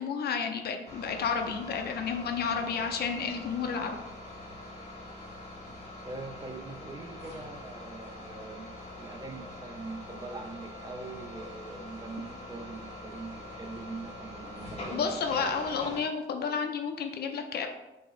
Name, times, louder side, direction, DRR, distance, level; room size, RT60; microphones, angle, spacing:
voice 1, 0.0-4.0 14.9-17.7, left 6 dB, 55° left, 5 dB, 0.4 m, -31 dB
sound 1, 0.9-16.0, left 1 dB, 30° left, 0.8 m, -44 dB
voice 2, 6.0-8.7 8.9-15.2, right 3 dB, 20° right, 3 dB, 0.4 m, -42 dB
4.4 x 2.0 x 2.4 m, 0.99 s
cardioid pair, 90°, 20 cm